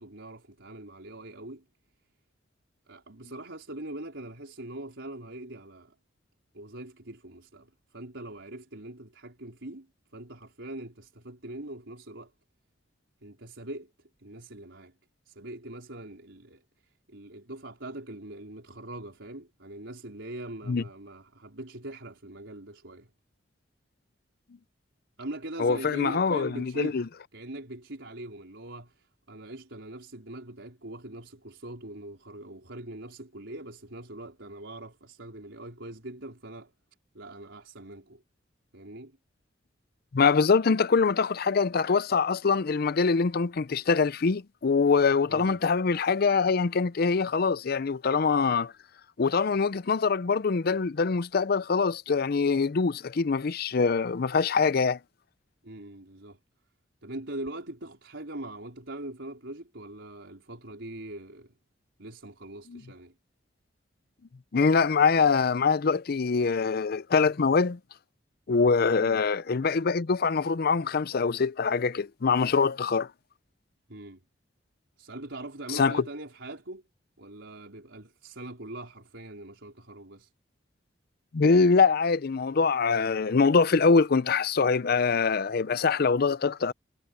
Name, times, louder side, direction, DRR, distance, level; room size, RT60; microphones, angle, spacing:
voice 1, 0.0-1.6 2.9-5.9 6.5-9.9 10.1-12.3 13.2-13.9 14.2-14.9 15.3-16.6 17.1-23.1 25.2-27.0 27.3-36.7 37.1-38.2 38.7-39.2 45.3-45.6 55.6-56.4 57.0-61.5 62.0-63.1 68.9-69.2 73.9-74.2 75.0-76.8 77.2-80.3, right 1 dB, 85° right, 4.5 m, -42 dB
voice 2, 25.6-27.1 40.1-48.7 49.2-55.0 62.7-62.8 64.5-67.8 68.5-73.1 75.7-76.0 81.3-86.7, left 5 dB, 55° left, 0.5 m, -24 dB
head